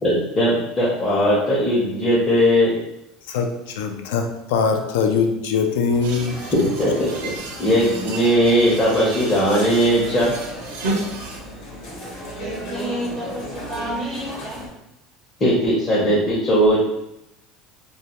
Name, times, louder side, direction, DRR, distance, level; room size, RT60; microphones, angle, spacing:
voice 1, 0.0-2.8 6.5-7.3 7.6-10.3 15.4-16.8, equal, 25° left, -7 dB, 0.7 m, -18 dB
voice 2, 3.3-6.5, left 5 dB, 85° left, 5 dB, 0.3 m, -22 dB
sound 1, 5.9-14.7, equal, 60° left, 1.0 m, -35 dB
sound 2, 6.0-11.4, right 2 dB, 90° right, 0.5 m, -32 dB
voice 3, 12.4-14.6, right 1 dB, 20° right, -1 dB, 0.4 m, -31 dB
2.2 x 2.2 x 2.8 m, 0.86 s
supercardioid pair, 120°, 0 cm